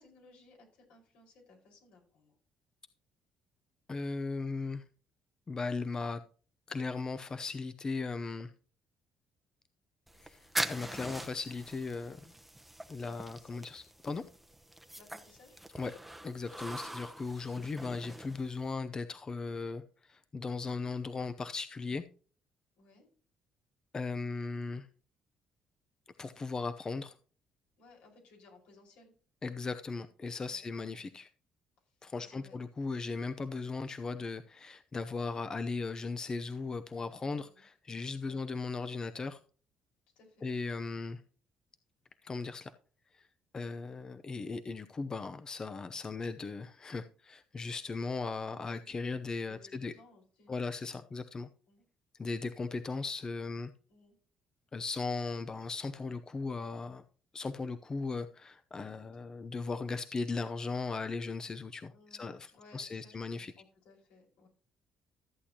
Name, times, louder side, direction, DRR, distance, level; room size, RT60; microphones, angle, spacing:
voice 1, 0.0-2.3 13.1-13.6 14.9-15.6 22.8-23.1 27.8-29.1 30.5-31.0 31.8-32.6 37.2-37.7 38.2-38.4 40.1-40.5 49.5-50.5 51.7-51.8 53.9-54.2 59.1-59.2 61.9-64.5, left 3 dB, 85° left, 5.1 m, -61 dB
voice 2, 3.9-4.8 5.5-6.2 6.7-8.5 10.2-12.2 12.9-14.2 15.8-15.9 16.2-22.0 23.9-24.9 26.2-27.2 29.4-31.3 32.0-39.4 40.4-41.2 42.2-42.7 43.1-43.3 43.5-49.9 50.5-51.5 52.2-53.7 54.7-57.0 57.3-63.5, left 4 dB, 30° left, 0.7 m, -37 dB
sound 1, 10.1-18.7, right 1 dB, 5° right, 0.9 m, -42 dB
14.0 x 8.4 x 2.9 m
cardioid pair, 90°, 2 cm